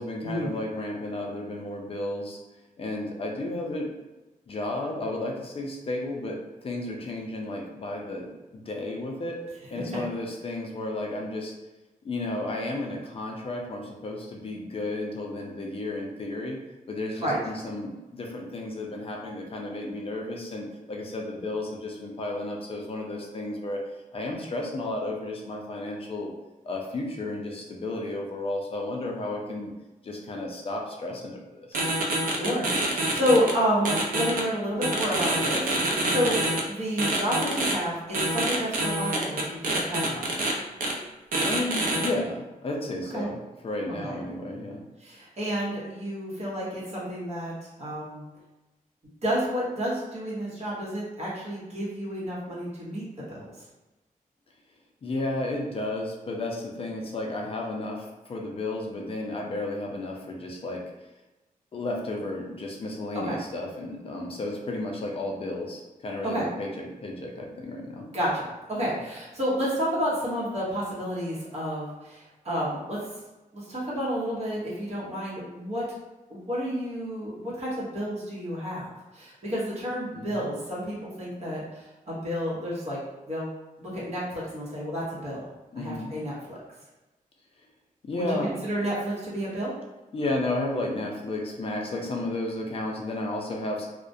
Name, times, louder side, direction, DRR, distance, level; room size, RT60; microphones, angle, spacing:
voice 1, 0.0-2.4 2.8-3.9 4.5-9.4 9.7-11.5 12.0-23.8 24.1-26.3 26.6-29.7 30.0-31.8 36.1-36.4 41.4-43.4 43.6-44.8 55.0-60.8 61.7-68.1 68.8-68.9 80.1-80.4 85.7-86.2 88.0-88.5 90.1-93.9, left 2 dB, 40° left, 0 dB, 0.4 m, -33 dB
sound 1, 31.7-33.5 33.8-34.4 34.8-36.6 37.0-37.7 38.1-40.5 40.8-40.9 41.3-42.1, right 2 dB, 70° right, 0.4 m, -26 dB
voice 2, 32.3-36.4 36.7-40.3 43.1-43.3 44.0-44.2 45.0-47.5 47.8-48.2 49.2-53.5 63.1-63.4 66.2-66.4 68.1-73.0 73.5-75.8 76.3-78.9 79.1-83.0 83.3-83.5 83.8-85.4 85.8-86.6 88.1-89.7, equal, 45° right, -7 dB, 0.9 m, -30 dB
2.3 x 2.1 x 2.6 m, 1.1 s
wide cardioid pair, 170°, 15 cm